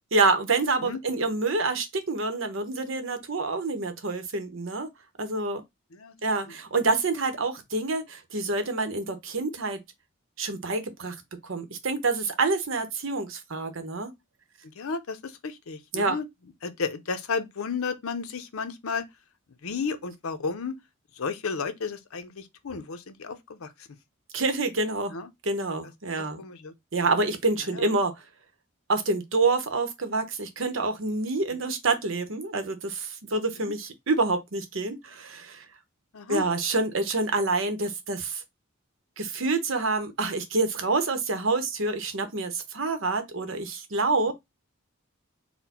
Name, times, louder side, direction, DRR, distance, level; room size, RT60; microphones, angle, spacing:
voice 1, 0.1-4.9 5.2-5.6 6.2-9.8 10.4-11.2 11.4-14.1 15.9-16.1 24.3-25.1 25.4-26.4 26.9-28.1 28.9-35.6 36.3-38.4 39.2-44.3, right 3 dB, 65° right, 0.8 m, -27 dB
voice 2, 14.6-16.3 16.6-19.0 19.6-20.7 21.1-23.9 25.1-25.3 26.2-26.7 27.7-27.9 31.7-31.8 33.6-33.7 36.1-36.5, left 5 dB, 80° left, 0.6 m, -33 dB
4.2 x 2.1 x 4.2 m
head